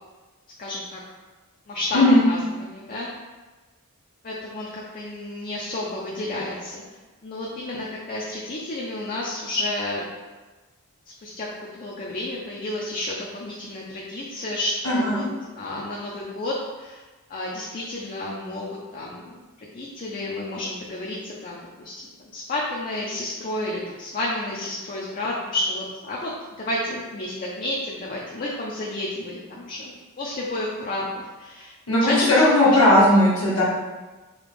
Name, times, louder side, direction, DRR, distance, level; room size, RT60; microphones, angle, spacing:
voice 1, 0.6-1.0 1.7-3.1 4.2-6.8 7.2-10.0 11.2-15.2 15.6-17.0 17.3-26.3 26.6-31.7 32.0-32.3 32.6-33.3, left 1 dB, 40° left, -4 dB, 0.5 m, -31 dB
voice 2, 1.9-2.2 14.8-15.2 31.9-33.6, left 1 dB, 85° left, -8 dB, 1.4 m, -17 dB
4.9 x 2.3 x 3.4 m, 1.2 s
head